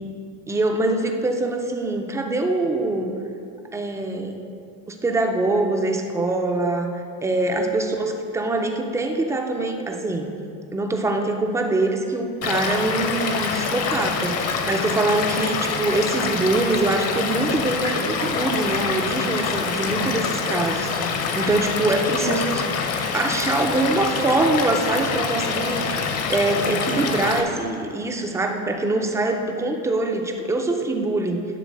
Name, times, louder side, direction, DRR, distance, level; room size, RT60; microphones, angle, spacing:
voice 1, 0.5-3.2 3.7-4.4 4.9-6.9 7.2-10.3 10.7-22.7 23.1-31.4, right 2 dB, 10° right, 4 dB, 0.3 m, -24 dB
Stream / Liquid, 12.4-27.4, left 5 dB, 45° left, 0.7 m, -25 dB
11.5 x 4.0 x 6.4 m, 2.5 s
cardioid pair, 175°, 34 cm